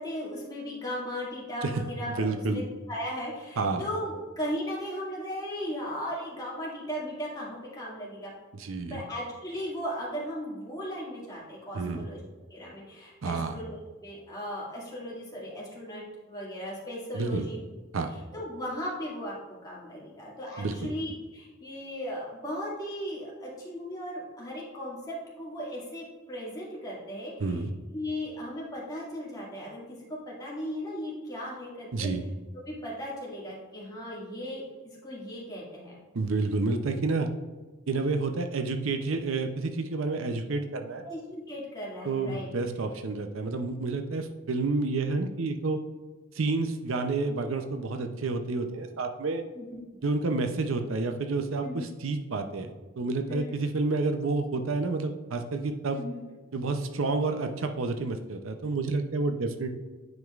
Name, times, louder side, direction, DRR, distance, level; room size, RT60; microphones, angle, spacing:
voice 1, 0.0-8.3 8.9-12.2 12.5-17.6 18.1-19.4 19.6-27.6 27.9-32.1 32.6-36.0 41.0-42.5 49.5-49.8 51.6-51.8 53.3-53.5 56.0-56.2, equal, 20° left, -5 dB, 2.1 m, -37 dB
voice 2, 2.1-2.6 3.6-3.9 8.5-9.0 11.7-12.1 13.2-13.5 17.1-17.5 17.9-18.1 20.6-20.9 27.4-27.7 31.9-32.2 36.1-37.3 37.9-41.0 42.1-45.8 46.3-49.4 50.0-56.0 56.5-59.7, right 3 dB, 75° right, 6 dB, 0.6 m, -29 dB
9.3 x 5.2 x 2.4 m, 1.3 s
head